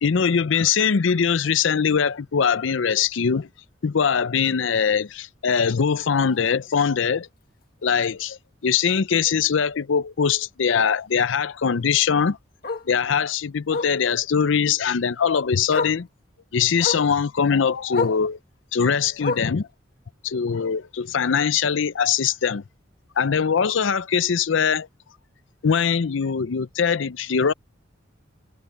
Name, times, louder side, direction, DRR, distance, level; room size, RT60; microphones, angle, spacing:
voice 1, 0.0-3.5 3.8-7.3 7.8-8.4 8.6-12.4 12.9-16.1 16.5-18.4 18.7-19.7 20.2-22.6 23.2-24.9 25.6-27.5, left 6 dB, 70° left, 0.5 m, -22 dB
Bark, 6.2-6.4 6.8-6.9 7.2-7.3 7.6-7.7 9.1-9.2 11.7-11.8 12.6-12.9 13.7-14.0 15.2-15.3 15.7-16.0 16.8-17.1 17.9-18.2 19.2-19.6 20.6-20.7, left 4 dB, 50° left, 1.7 m, -28 dB
head